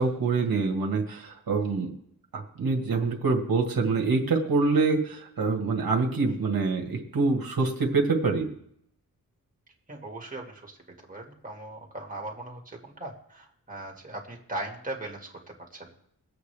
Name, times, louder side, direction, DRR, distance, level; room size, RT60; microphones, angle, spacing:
voice 1, 0.0-1.9 2.3-8.5, right 4 dB, 75° right, 2 dB, 1.7 m, -25 dB
voice 2, 9.9-10.8 11.1-15.9, right 2 dB, 25° right, -1 dB, 2.2 m, -39 dB
22.5 x 8.1 x 3.4 m, 0.72 s
wide cardioid pair, 130°, 35 cm